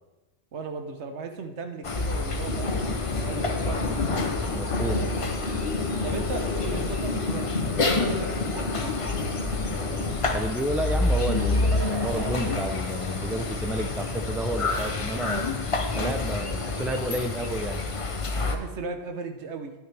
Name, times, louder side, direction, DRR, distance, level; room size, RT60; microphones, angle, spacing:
voice 1, 0.5-2.8 3.2-3.9 6.0-7.6 7.9-9.0 18.4-19.7, right 4 dB, 85° right, 6 dB, 1.2 m, -36 dB
sound 1, 1.8-18.6, left 3 dB, 35° left, 0.7 m, -28 dB
sound 2, 2.2-10.1, left 3 dB, 75° left, 2.3 m, -32 dB
voice 2, 4.5-5.0 10.3-15.5 15.9-17.8, right 1 dB, ahead, 7 dB, 0.4 m, -31 dB
Laughter / Crowd, 11.3-15.6, right 2 dB, 35° right, 1.2 m, -41 dB
11.0 x 9.4 x 3.4 m, 1.1 s
omnidirectional pair, 1.1 m